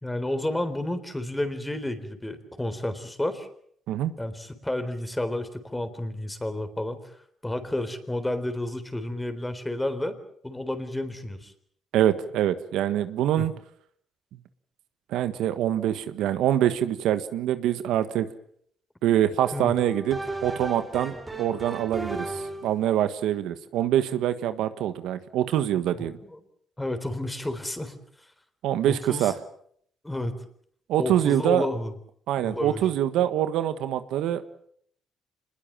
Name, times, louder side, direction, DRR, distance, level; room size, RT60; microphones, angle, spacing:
voice 1, 0.0-3.5 4.2-7.1 7.4-10.2 10.4-11.5 13.4-13.5 19.5-19.7 26.2-26.4 26.8-28.0 28.8-29.3 30.0-30.3 31.0-31.9 32.4-32.8, left 1 dB, 10° left, 10 dB, 3.8 m, -31 dB
voice 2, 11.9-13.5 15.1-18.3 19.0-26.2 28.6-29.3 30.9-31.7 32.3-34.4, right 11 dB, 90° right, 11 dB, 1.5 m, -25 dB
sound 1, 19.4-22.8, right 2 dB, 15° right, 4.1 m, -35 dB
26.0 x 20.5 x 7.5 m, 0.64 s
cardioid pair, 90°, 0 cm